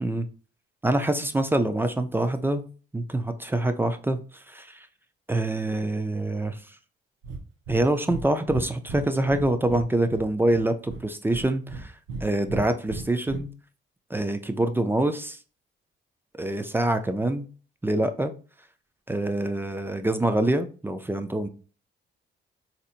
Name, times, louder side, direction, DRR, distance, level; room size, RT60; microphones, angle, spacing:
voice 1, 0.8-2.6 2.9-4.2 4.5-4.9 5.3-6.6 7.7-11.9 12.2-13.5 14.1-15.4 16.4-17.5 17.8-18.3 19.1-21.5, right 1 dB, 10° right, 9 dB, 0.4 m, -25 dB
Breathing, 7.2-7.4 7.7-8.2 8.5-9.8 10.1-11.0 11.3-12.2 12.5-13.4, right 4 dB, 90° right, 0.7 m, -35 dB
4.0 x 2.8 x 2.4 m, 0.37 s
cardioid pair, 90°, 20 cm